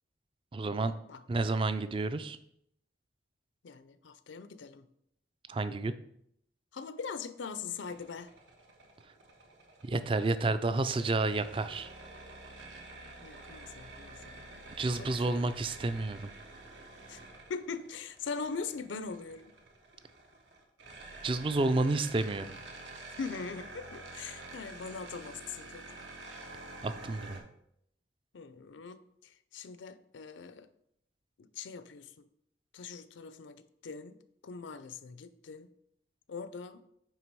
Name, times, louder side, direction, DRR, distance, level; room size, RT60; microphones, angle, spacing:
voice 1, 0.5-0.9 1.3-2.4 5.5-5.9 9.8-11.9 14.8-16.3 21.2-22.6 26.8-27.4, right 2 dB, 30° right, 12 dB, 0.3 m, -30 dB
voice 2, 3.6-4.9 6.7-8.3 13.2-14.5 14.9-15.5 17.1-17.2 17.5-19.4 23.2-25.9 28.3-30.7 31.4-32.1 32.7-34.2 34.4-35.7 36.3-36.8, left 5 dB, 80° left, 13 dB, 0.5 m, -42 dB
sound 1, 7.8-27.4, right 2 dB, 80° right, 1.2 m, -49 dB
9.3 x 3.3 x 4.6 m, 0.74 s
head